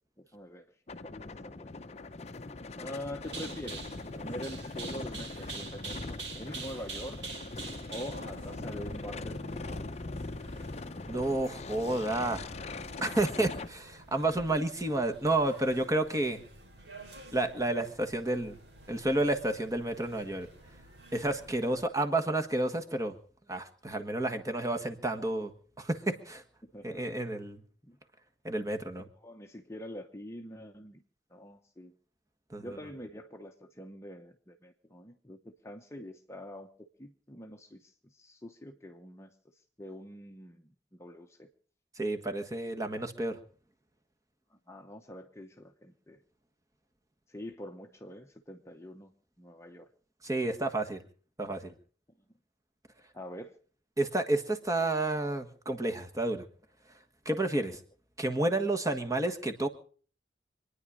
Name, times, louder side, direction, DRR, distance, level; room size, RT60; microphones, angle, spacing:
voice 1, 0.2-0.7 1.0-1.8 2.8-7.2 7.9-9.7 26.6-27.2 27.8-28.0 29.2-31.0 31.3-31.9 32.6-39.3 39.8-41.5 44.5-46.2 47.3-49.1 49.4-49.9 53.1-53.5, left 1 dB, 15° left, 4 dB, 0.9 m, -45 dB
sound 1, 0.9-13.7, left 3 dB, 35° left, 0.7 m, -41 dB
sound 2, 3.2-21.8, right 3 dB, 70° right, 3.9 m, -48 dB
voice 2, 11.1-12.4 13.0-16.4 17.3-18.6 18.9-20.5 21.1-23.1 23.5-25.5 25.8-26.4 26.8-27.6 28.4-29.1 32.5-32.8 42.0-43.4 50.2-51.0 51.4-51.7 54.0-56.4 57.2-57.8 58.2-59.7, right 2 dB, 20° right, 6 dB, 1.5 m, -30 dB
26.0 x 10.0 x 5.1 m, 0.43 s
head